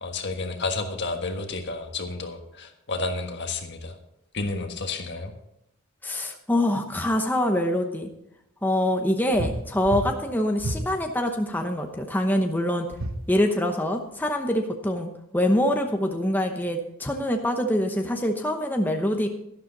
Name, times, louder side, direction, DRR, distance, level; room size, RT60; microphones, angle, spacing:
voice 1, 0.0-4.0 4.3-5.3, left 3 dB, 55° left, 5 dB, 1.5 m, -31 dB
voice 2, 6.0-8.1 8.6-12.9 13.3-19.3, left 1 dB, 10° left, 3 dB, 0.9 m, -25 dB
sound 1, 9.3-9.6 9.8-10.1 10.6-10.8 12.9-13.2, right 1 dB, 70° right, 1.2 m, -29 dB
12.5 x 12.0 x 4.0 m, 0.80 s
head